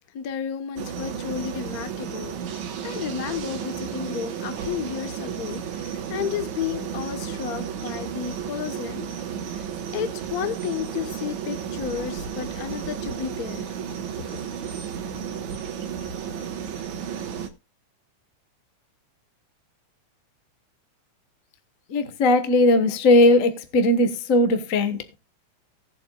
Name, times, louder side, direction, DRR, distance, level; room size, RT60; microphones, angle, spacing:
voice 1, 0.1-2.4 2.8-9.1 9.9-13.7 14.2-14.3, left 8 dB, 85° left, 0.8 m, -32 dB
sound 1, 0.8-17.5, right 8 dB, 75° right, 2.6 m, -33 dB
voice 2, 21.9-25.0, left 2 dB, 55° left, 0.9 m, -18 dB
18.0 x 8.1 x 2.3 m
omnidirectional pair, 3.5 m